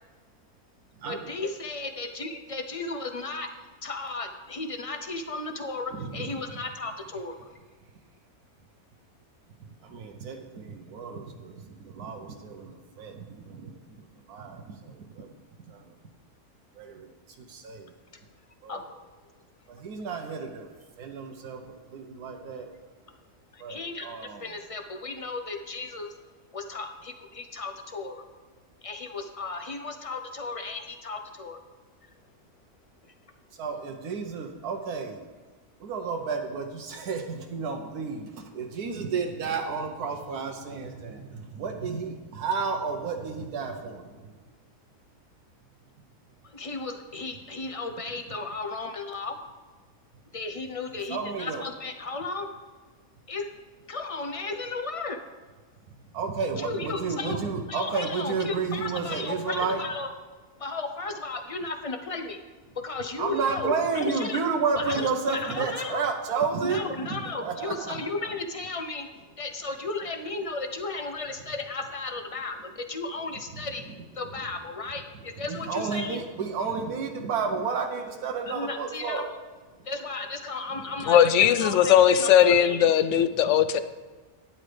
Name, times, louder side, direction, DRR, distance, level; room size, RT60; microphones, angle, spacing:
voice 1, 1.0-3.5 3.8-7.4 18.1-18.2 18.7-18.8 23.5-24.1 24.4-26.2 26.5-28.2 28.8-31.6 46.4-49.4 50.3-52.5 53.3-53.5 53.9-55.3 56.6-57.4 57.7-60.1 60.6-62.5 62.8-64.4 64.8-66.1 66.6-76.2 78.5-79.3 79.8-82.9, left 3 dB, 30° left, 6 dB, 0.6 m, -35 dB
voice 2, 6.0-6.3 9.8-15.3 15.7-15.8 16.8-17.1 17.4-17.9 18.6-18.8 19.7-21.6 21.9-22.7 23.6-24.4 33.6-35.2 35.8-44.2 51.1-51.6 56.1-59.8 63.2-67.9 75.5-79.3 83.1-83.2 83.6-83.7, right 5 dB, 90° right, 3 dB, 1.4 m, -32 dB
voice 3, 81.1-83.8, left 9 dB, 65° left, 12 dB, 0.8 m, -19 dB
12.0 x 10.0 x 3.4 m, 1.4 s
omnidirectional pair, 1.6 m